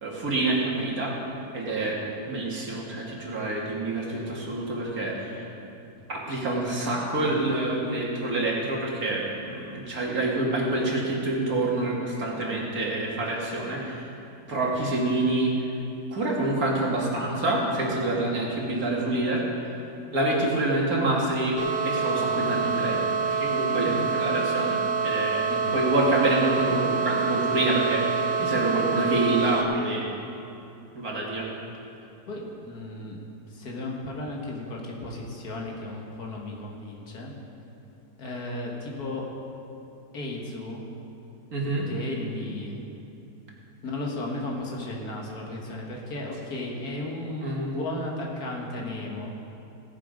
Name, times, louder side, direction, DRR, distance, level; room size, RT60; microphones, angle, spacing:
voice 1, 0.0-1.1 1.5-2.0 2.3-5.4 6.1-14.1 14.5-15.5 16.1-19.4 20.1-21.6 21.8-23.0 23.3-24.8 25.0-25.5 25.7-30.0 30.9-31.5 41.5-41.9 47.4-47.7, right 2 dB, 60° right, -3 dB, 2.3 m, -27 dB
sound 1, 21.6-29.6, right 5 dB, 80° right, 1.5 m, -26 dB
voice 2, 25.5-25.8 32.3-33.2 33.5-37.3 38.2-39.3 40.1-40.8 41.9-42.8 43.8-49.3, left 2 dB, 65° left, -1 dB, 2.0 m, -34 dB
17.5 x 7.1 x 5.1 m, 2.7 s
omnidirectional pair, 1.8 m